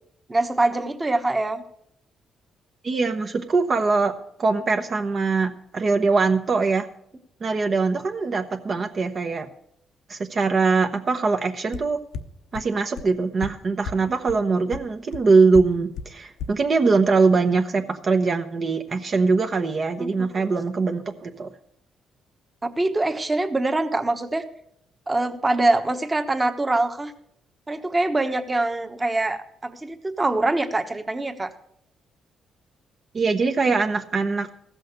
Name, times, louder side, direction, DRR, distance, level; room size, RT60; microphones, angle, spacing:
voice 1, 0.3-1.6 20.0-20.3 22.8-24.4 25.1-27.1 27.7-31.5, right 2 dB, 20° right, 7 dB, 1.2 m, -24 dB
voice 2, 2.8-4.1 4.4-6.9 7.4-9.5 10.1-12.0 12.5-21.5 33.1-34.5, right 4 dB, 45° right, 4 dB, 0.9 m, -22 dB
sound 1, 11.7-11.8 12.1-12.2 12.5-12.6 13.0-13.1 13.4-13.5 13.8-13.9 14.3-14.4 14.7-14.8 15.1-15.2 15.5-15.6 16.0-16.1 16.4-16.5, left 6 dB, 90° left, 0.8 m, -30 dB
15.0 x 6.4 x 6.5 m, 0.74 s
cardioid pair, 90°, 0 cm